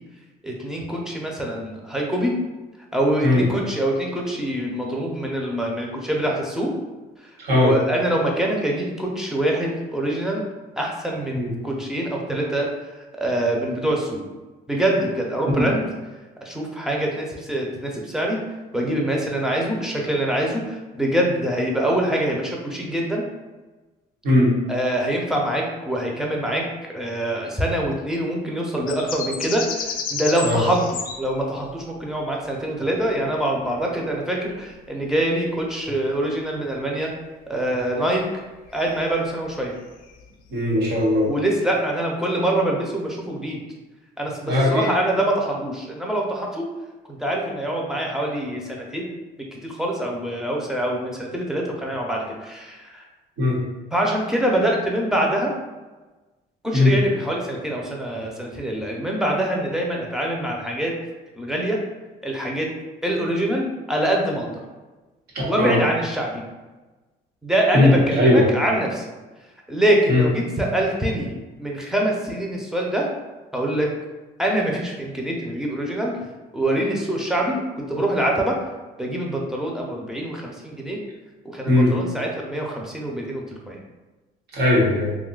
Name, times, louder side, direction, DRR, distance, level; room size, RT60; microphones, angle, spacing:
voice 1, 0.4-2.3 2.9-6.7 7.5-10.4 10.8-12.7 13.2-14.2 14.7-15.8 16.4-18.4 18.7-23.2 24.7-37.1 37.5-38.2 38.7-39.7 41.3-43.6 44.2-46.6 47.1-49.1 49.5-53.1 53.9-55.5 56.6-60.9 61.4-61.8 62.2-62.7 63.0-64.6 65.4-66.4 67.4-69.1 69.7-73.1 73.5-73.9 74.4-76.2 76.5-78.5 79.0-81.0 81.5-83.8, right 1 dB, 5° right, -2 dB, 0.6 m, -24 dB
voice 2, 7.4-7.7 11.3-11.5 15.5-15.7 24.2-24.5 30.4-30.6 40.5-41.3 44.5-44.8 53.4-53.6 56.7-56.9 65.6-65.8 67.7-68.4 70.1-70.2 81.7-81.9 84.5-85.1, left 2 dB, 80° right, -5 dB, 1.2 m, -18 dB
sound 1, 28.9-31.8 33.6-34.0 34.5-34.6 38.7-39.1 39.4-39.7 40.0-40.1, left 5 dB, 55° left, 0.5 m, -32 dB
2.6 x 2.4 x 3.8 m, 1.2 s
cardioid pair, 110°, 17 cm